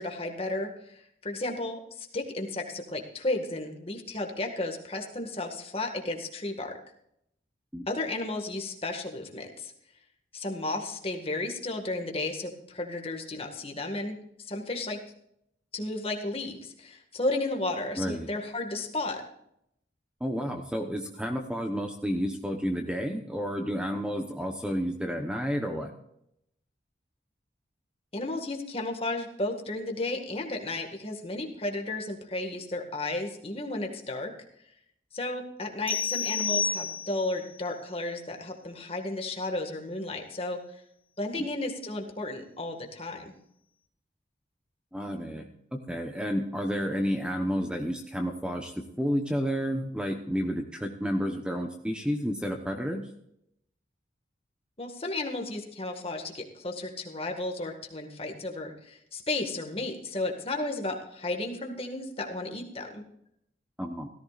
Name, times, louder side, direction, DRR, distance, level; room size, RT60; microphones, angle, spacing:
voice 1, 0.0-6.8 7.9-9.7 10.3-15.0 15.7-19.2 28.1-34.3 35.1-40.6 41.2-43.3 54.8-63.0, left 2 dB, 30° left, 3 dB, 1.9 m, -33 dB
voice 2, 18.0-18.3 20.2-25.9 41.4-41.5 44.9-53.0 63.8-64.1, equal, 5° right, 3 dB, 1.0 m, -31 dB
sound 1, 35.9-37.4, left 5 dB, 10° left, 1.7 m, -30 dB
17.0 x 14.5 x 2.5 m, 0.75 s
head